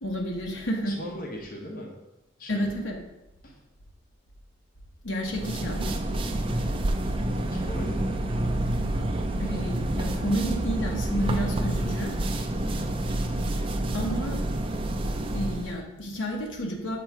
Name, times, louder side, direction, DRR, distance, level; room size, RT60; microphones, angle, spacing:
voice 1, 0.0-0.9 2.5-3.0 5.0-6.0 9.4-12.1 13.9-14.4 15.3-17.0, equal, 85° left, 0 dB, 1.0 m, -30 dB
voice 2, 0.8-2.0 2.4-2.7 3.4-3.6 6.8-8.1 12.6-13.0, equal, 45° left, -1 dB, 0.9 m, -39 dB
sound 1, 5.2-15.8, right 1 dB, 25° right, 0.4 m, -28 dB
6.8 x 3.1 x 4.6 m, 0.96 s
head